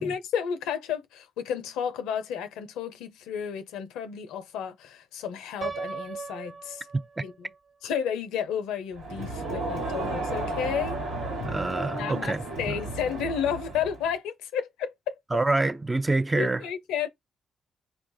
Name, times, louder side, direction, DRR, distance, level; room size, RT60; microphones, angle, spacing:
voice 1, 0.0-6.9 7.2-7.5 7.8-11.0 11.9-15.2 16.3-17.1, left 8 dB, 80° left, 0.5 m, -32 dB
Piano, 5.6-7.6, right 5 dB, 45° right, 1.2 m, -37 dB
Crowd, 8.9-14.1, right 2 dB, 85° right, 1.4 m, -33 dB
voice 2, 11.4-12.8 15.3-16.6, right 2 dB, 25° right, 0.5 m, -26 dB
4.5 x 2.3 x 3.8 m
hypercardioid pair, 40°, 0 cm